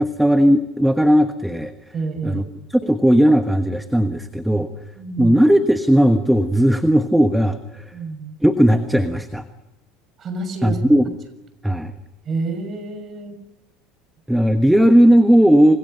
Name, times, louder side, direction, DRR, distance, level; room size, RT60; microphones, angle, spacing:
voice 1, 0.0-1.7 2.2-2.4 2.8-4.7 5.2-7.8 8.4-9.4 10.6-11.0 11.6-11.9 14.3-15.8, equal, ahead, 8 dB, 1.3 m, -16 dB
voice 2, 1.9-2.4 4.9-5.3 7.9-8.4 10.2-10.8 12.2-13.4, right 3 dB, 35° right, 9 dB, 6.3 m, -28 dB
29.0 x 26.0 x 5.6 m, 0.94 s
supercardioid pair, 135°, 0 cm